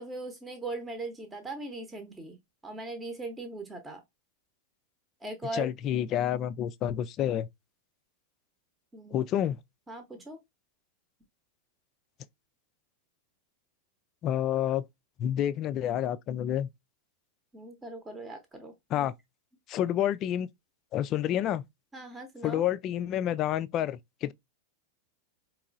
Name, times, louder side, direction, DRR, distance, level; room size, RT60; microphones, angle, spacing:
voice 1, 0.0-4.0 5.2-5.7 8.9-9.2 9.9-10.4 17.5-19.1 21.9-22.6, right 2 dB, 15° right, 0.9 m, -40 dB
voice 2, 5.5-7.5 9.1-9.6 14.2-14.8 15.2-16.7 18.9-19.1 19.7-20.5 20.9-21.6 22.4-24.3, left 11 dB, 35° left, 0.4 m, -29 dB
4.6 x 3.0 x 2.5 m
figure-of-eight pair, 90°, 0 cm